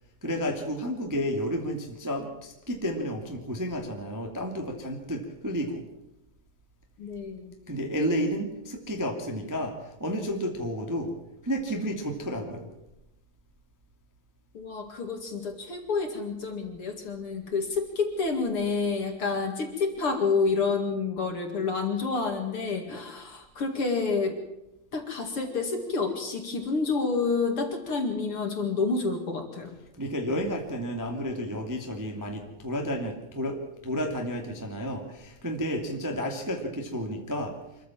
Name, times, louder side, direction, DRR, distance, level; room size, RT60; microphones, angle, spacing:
voice 1, 0.2-5.8 7.7-11.1 11.4-12.7 30.0-37.6, equal, 5° right, 2 dB, 1.6 m, -31 dB
voice 2, 7.0-7.6 14.5-24.3 24.9-29.8, left 4 dB, 45° left, 4 dB, 2.7 m, -29 dB
26.0 x 14.5 x 7.3 m, 0.92 s
omnidirectional pair, 4.1 m